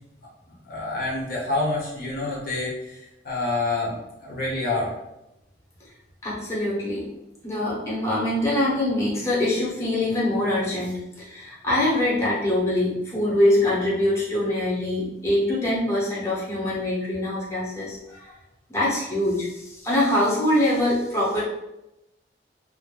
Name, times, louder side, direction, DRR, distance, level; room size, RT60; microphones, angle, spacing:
voice 1, 0.7-4.9, left 2 dB, 55° left, -4 dB, 0.7 m, -27 dB
voice 2, 6.2-7.1 7.4-18.3 18.7-21.4, left 1 dB, 15° left, -7 dB, 0.7 m, -24 dB
2.3 x 2.1 x 3.1 m, 0.90 s
head